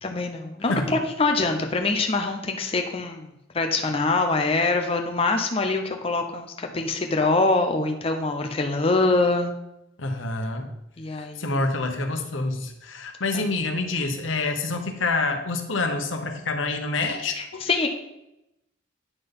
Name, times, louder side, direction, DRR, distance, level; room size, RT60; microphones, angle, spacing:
voice 1, 0.0-9.5 11.0-11.6 13.3-13.4 17.1-17.9, left 3 dB, 30° left, 4 dB, 0.6 m, -24 dB
voice 2, 10.0-10.7 11.4-17.6, left 3 dB, 85° left, 5 dB, 1.0 m, -27 dB
9.4 x 3.9 x 5.4 m, 0.88 s
head